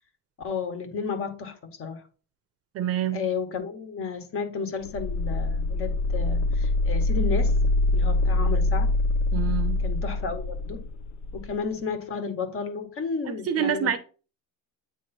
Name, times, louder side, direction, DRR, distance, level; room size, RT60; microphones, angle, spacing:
voice 1, 0.4-2.0 3.1-7.6 7.9-8.9 9.8-10.8 11.3-14.0, left 5 dB, 40° left, 1.5 m, -32 dB
voice 2, 2.7-3.2 9.3-9.8 13.3-14.0, right 9 dB, 45° right, 0.7 m, -27 dB
sound 1, 4.8-11.5, left 2 dB, 55° left, 0.7 m, -24 dB
9.0 x 3.1 x 4.3 m
cardioid pair, 155°, 33 cm